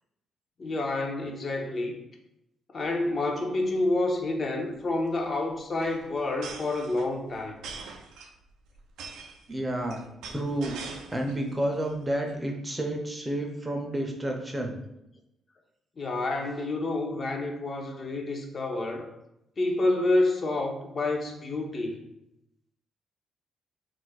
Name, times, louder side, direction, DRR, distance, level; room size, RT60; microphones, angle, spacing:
voice 1, 0.6-2.0 2.7-7.6 16.0-19.1 19.6-22.0, left 2 dB, 40° left, 2 dB, 0.5 m, -28 dB
sound 1, 2.8-3.0 3.3-3.4 3.6-3.9 4.9-11.5 11.8-12.3, right 5 dB, 85° right, 0.3 m, -44 dB
voice 2, 9.5-10.8 11.1-14.8, right 1 dB, 15° right, 2 dB, 0.5 m, -30 dB
2.4 x 2.1 x 3.9 m, 0.85 s
cardioid pair, 90°, 0 cm